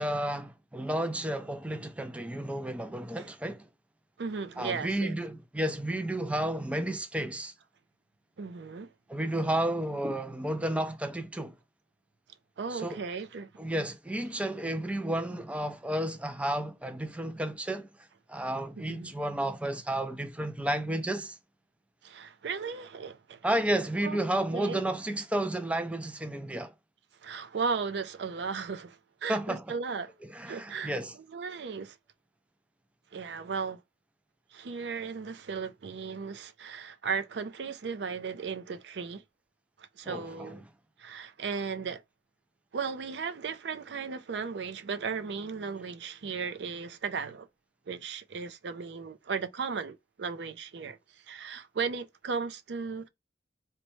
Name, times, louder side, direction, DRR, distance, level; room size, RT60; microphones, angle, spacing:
voice 1, 0.0-3.7 4.6-7.5 9.1-11.6 12.7-13.0 13.6-17.9 18.3-21.4 23.4-26.7 29.3-29.7 30.3-31.1 40.0-40.6, right 1 dB, 5° right, 0.4 m, -32 dB
voice 2, 4.2-5.2 8.4-8.9 12.6-13.5 18.8-19.1 22.0-23.5 24.0-24.2 24.5-24.8 27.2-30.1 30.5-32.0 33.1-33.8 34.5-39.2 39.8-40.6 41.0-42.0 42.7-47.5 47.9-53.1, right 5 dB, 75° right, 0.5 m, -36 dB
4.0 x 2.2 x 3.0 m
head